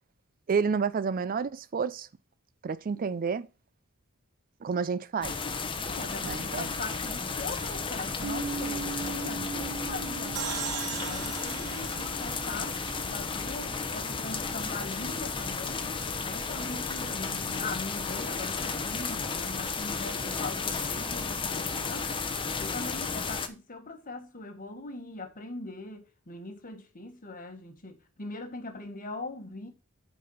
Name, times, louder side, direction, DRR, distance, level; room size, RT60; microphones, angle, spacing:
voice 1, 0.5-2.1 2.6-3.5 4.6-5.3 6.2-6.7, right 5 dB, 40° right, 0.4 m, -29 dB
sound 1, 5.2-23.5, left 4 dB, 25° left, 0.8 m, -33 dB
voice 2, 5.8-12.8 13.1-15.9 16.2-22.2 22.5-29.7, left 3 dB, 40° left, 1.5 m, -41 dB
sound 2, 8.2-16.0, right 4 dB, 5° right, 2.7 m, -41 dB
sound 3, 10.4-13.7, right 9 dB, 80° right, 0.9 m, -39 dB
8.4 x 4.1 x 5.6 m
head